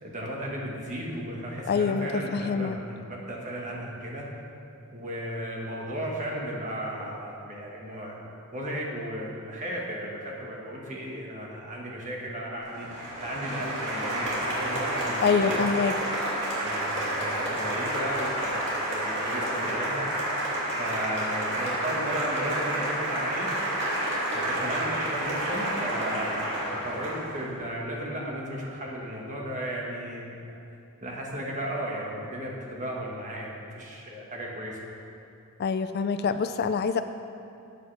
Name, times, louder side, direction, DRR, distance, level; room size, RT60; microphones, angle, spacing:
voice 1, 0.0-4.3 4.9-8.1 8.5-12.9 13.2-15.7 16.6-20.1 20.7-23.5 24.3-30.6 31.0-34.8, equal, 35° right, -3 dB, 1.6 m, -35 dB
voice 2, 1.7-2.1 2.3-2.8 15.2-15.9 35.6-37.0, left 5 dB, 45° left, 10 dB, 0.3 m, -25 dB
Applause, 12.7-27.5, right 1 dB, 55° right, 2.6 m, -30 dB
13.0 x 8.8 x 3.4 m, 2.6 s
head